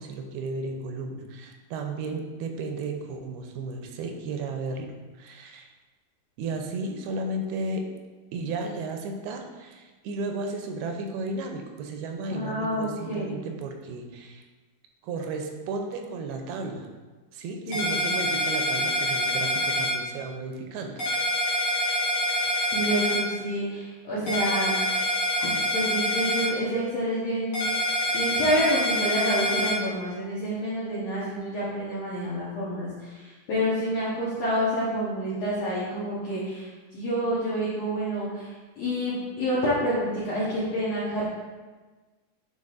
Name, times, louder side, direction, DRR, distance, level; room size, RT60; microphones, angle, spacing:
voice 1, 0.0-5.7 6.4-7.9 8.3-14.4 15.0-16.9 17.3-21.0, right 3 dB, 85° right, 4 dB, 2.6 m, -34 dB
voice 2, 12.3-13.4 17.7-18.0 22.7-25.1 25.4-27.7 28.1-38.5 38.8-41.2, equal, 65° left, -9 dB, 1.6 m, -28 dB
sound 1, 17.7-19.9 21.0-23.2 24.3-26.5 27.5-29.7, equal, 50° left, 1.6 m, -26 dB
9.4 x 4.5 x 2.5 m, 1.3 s
omnidirectional pair, 4.5 m